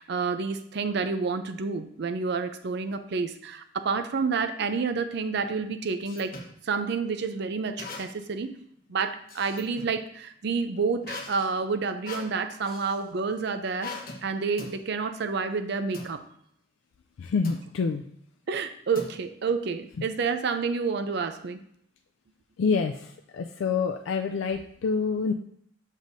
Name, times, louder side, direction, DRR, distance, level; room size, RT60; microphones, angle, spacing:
voice 1, 0.0-6.4 6.6-8.5 8.9-13.9 14.2-16.2 18.5-21.6, right 5 dB, 60° right, 9 dB, 0.5 m, -29 dB
sound 1, 5.5-6.6 7.8-8.4 8.7-10.0 11.0-13.0 13.8-14.2 14.6-14.8 15.9-16.1 17.4-17.7 18.9-19.5, left 3 dB, 50° left, 1.0 m, -41 dB
voice 2, 17.2-18.0 22.6-25.3, left 5 dB, 80° left, 5 dB, 0.3 m, -27 dB
7.2 x 6.3 x 2.6 m, 0.69 s
head